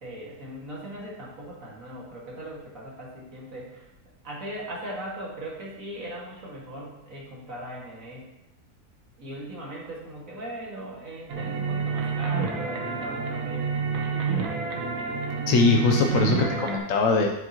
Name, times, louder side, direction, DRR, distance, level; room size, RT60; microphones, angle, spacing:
voice 1, 0.0-3.9 4.2-8.3 9.2-13.8, right 1 dB, 55° right, -4 dB, 2.4 m, -39 dB
sound 1, 11.3-16.8, right 5 dB, 75° right, 1.6 m, -28 dB
voice 2, 15.5-17.3, left 4 dB, 60° left, 2 dB, 1.1 m, -21 dB
8.9 x 7.5 x 3.0 m, 0.91 s
omnidirectional pair, 1.7 m